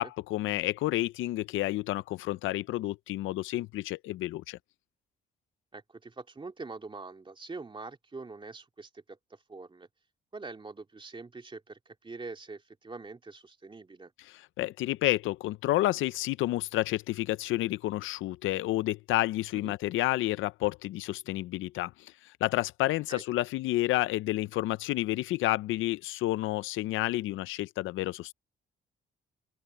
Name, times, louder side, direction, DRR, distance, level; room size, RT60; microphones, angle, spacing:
voice 1, 0.0-4.6 14.2-22.1 22.4-28.3, left 16 dB, 85° left, 0.5 m, -30 dB
voice 2, 5.7-9.9 10.3-14.1 19.5-19.7 23.1-23.2, right 3 dB, 25° right, 2.6 m, -44 dB
open air
cardioid pair, 90°, 20 cm